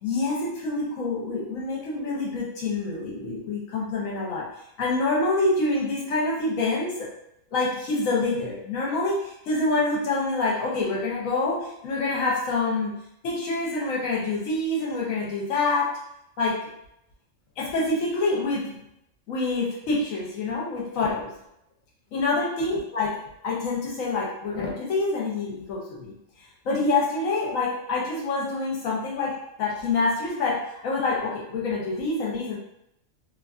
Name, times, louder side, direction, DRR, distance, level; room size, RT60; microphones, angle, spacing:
voice 1, 0.0-4.5 4.8-7.1 7.5-12.9 13.2-15.9 16.4-16.6 17.6-18.8 19.3-21.3 22.1-23.2 23.4-26.1 26.6-32.6, left 3 dB, 75° left, -3 dB, 1.1 m, -26 dB
2.8 x 2.5 x 2.4 m, 0.78 s
omnidirectional pair, 1.5 m